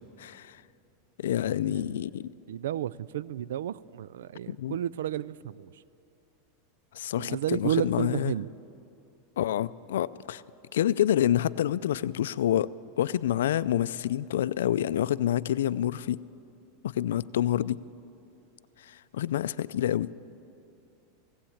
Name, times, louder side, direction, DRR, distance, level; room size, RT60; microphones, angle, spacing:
voice 1, 0.2-0.6 1.2-2.3 4.5-4.8 6.9-8.3 9.4-10.4 10.7-16.2 16.8-17.8 18.8-20.1, left 11 dB, 90° left, 0.4 m, -28 dB
voice 2, 2.5-5.7 7.2-8.5, right 11 dB, 90° right, 0.4 m, -32 dB
18.5 x 16.0 x 8.6 m
supercardioid pair, 140°, 0 cm